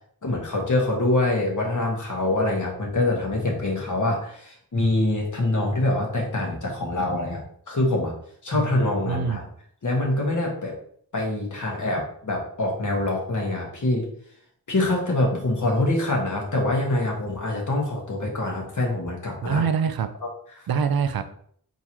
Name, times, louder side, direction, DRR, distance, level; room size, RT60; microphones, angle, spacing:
voice 1, 0.2-8.1 8.4-9.4 9.8-10.7 11.1-14.0 14.7-19.6, left 2 dB, 50° left, -1 dB, 1.4 m, -25 dB
voice 2, 9.1-9.4 19.4-20.1 20.7-21.2, right 6 dB, 70° right, 10 dB, 0.5 m, -24 dB
4.4 x 3.8 x 2.9 m, 0.62 s
wide cardioid pair, 70°, 38 cm